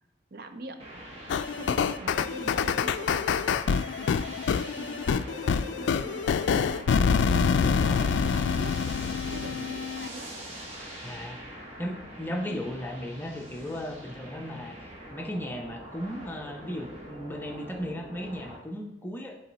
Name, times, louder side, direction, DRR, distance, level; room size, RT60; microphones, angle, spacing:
voice 1, 0.3-0.8 1.3-6.9 7.6-8.8 9.3-10.3 12.5-12.8, right 1 dB, 60° right, 7 dB, 0.6 m, -43 dB
sound 1, 0.8-18.6, right 1 dB, 35° right, 1.3 m, -43 dB
sound 2, 1.3-10.1, left 6 dB, 85° left, 0.3 m, -26 dB
voice 2, 7.6-8.1 11.0-11.4 11.8-14.7 15.1-19.3, left 1 dB, 10° left, 1 dB, 0.7 m, -36 dB
7.7 x 4.0 x 4.0 m, 0.84 s
head